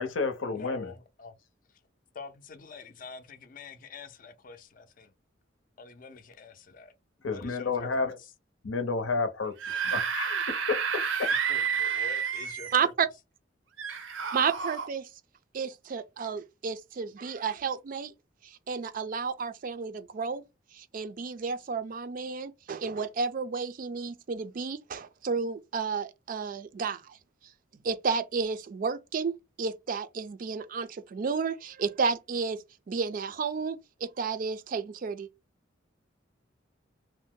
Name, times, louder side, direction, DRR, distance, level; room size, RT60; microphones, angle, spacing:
voice 1, 0.0-0.9 7.2-8.2 8.6-9.5 9.8-10.8 11.2-11.3, left 4 dB, 85° left, 0.7 m, -30 dB
voice 2, 0.5-1.4 2.1-5.1 5.8-6.9 7.2-7.9 9.7-10.0 11.5-12.9, left 4 dB, 45° left, 0.5 m, -46 dB
Screaming / Screech, 9.4-12.8 13.8-14.9, right 6 dB, 90° right, 0.6 m, -30 dB
voice 3, 12.7-13.1 14.3-15.1 15.5-18.1 18.4-20.4 20.7-27.2 27.8-29.3 29.6-35.3, right 5 dB, 45° right, 0.3 m, -32 dB
2.6 x 2.0 x 3.6 m
head